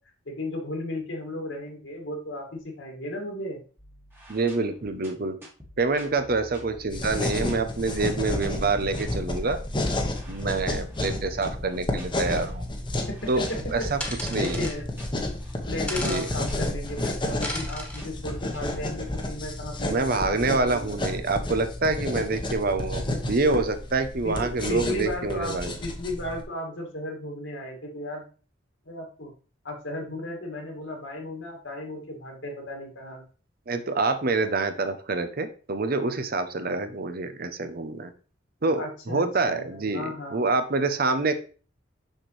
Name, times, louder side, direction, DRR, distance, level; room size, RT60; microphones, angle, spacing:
voice 1, 0.3-3.6 13.1-14.9 15.7-20.2 20.5-21.0 24.2-28.2 28.9-29.3 29.6-33.2 38.8-40.5, left 1 dB, 75° left, 1 dB, 2.2 m, -35 dB
sound 1, 3.8-19.3, equal, 10° right, 1.5 m, -48 dB
voice 2, 4.3-5.4 5.8-9.6 10.3-12.7 13.3-13.4 13.7-14.0 14.3-14.6 16.0-16.3 19.9-25.8 33.7-38.1 38.6-41.3, right 3 dB, 50° right, 9 dB, 0.7 m, -26 dB
sound 2, 6.9-26.4, left 1 dB, 25° left, 1.0 m, -31 dB
sound 3, 14.0-14.8 15.9-16.3 17.4-18.0, left 1 dB, 5° left, 1.6 m, -34 dB
6.4 x 6.3 x 3.2 m, 0.37 s
head